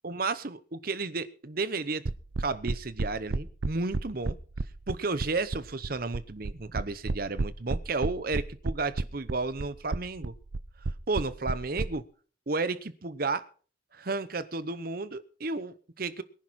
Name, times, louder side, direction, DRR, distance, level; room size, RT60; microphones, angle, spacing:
voice 1, 0.0-2.0 2.4-4.4 4.9-10.3 11.1-12.0 12.5-13.4 13.9-16.2, right 3 dB, 50° right, 15 dB, 0.8 m, -32 dB
sound 1, 2.1-11.9, right 3 dB, 90° right, 0.7 m, -30 dB
23.0 x 11.0 x 4.2 m, 0.42 s
head